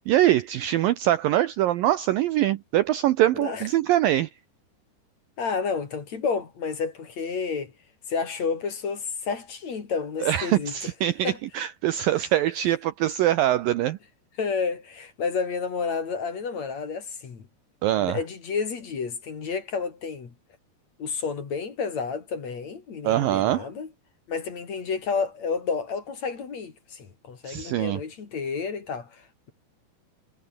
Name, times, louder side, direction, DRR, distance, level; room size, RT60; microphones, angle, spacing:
voice 1, 0.0-4.3 10.2-14.0 17.8-18.2 23.0-23.7 27.4-28.0, right 13 dB, 75° right, 2.1 m, -23 dB
voice 2, 3.3-3.6 5.4-7.7 8.1-10.7 11.2-11.4 14.4-17.4 18.0-20.3 21.0-23.9 24.3-29.5, left 5 dB, 45° left, 3.9 m, -30 dB
omnidirectional pair, 4.9 m